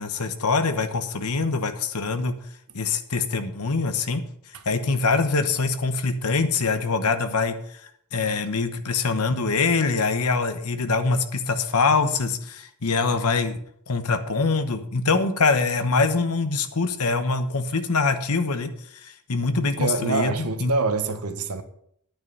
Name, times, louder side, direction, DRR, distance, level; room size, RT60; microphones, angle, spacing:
voice 1, 0.0-2.3 2.7-4.2 4.7-7.6 8.1-13.6 13.9-18.7 19.0-20.7, left 4 dB, 85° left, 9 dB, 1.1 m, -24 dB
voice 2, 19.8-21.6, right 3 dB, 90° right, 8 dB, 1.3 m, -26 dB
9.6 x 9.3 x 5.4 m, 0.68 s
head